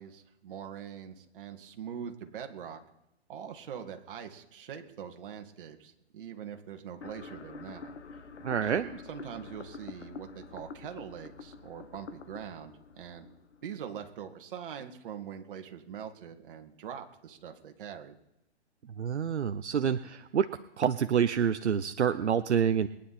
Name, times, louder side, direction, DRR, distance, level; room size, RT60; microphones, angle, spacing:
voice 1, 0.0-2.8 3.3-8.2 8.6-13.3 13.6-18.2, right 8 dB, 50° right, 5 dB, 2.2 m, -43 dB
sound 1, 7.0-14.0, left 4 dB, 85° left, 1.2 m, -47 dB
voice 2, 8.4-8.9 19.0-20.5 20.8-22.9, right 8 dB, 80° right, 10 dB, 0.8 m, -27 dB
22.0 x 9.9 x 4.3 m, 0.86 s
hypercardioid pair, 130°, 34 cm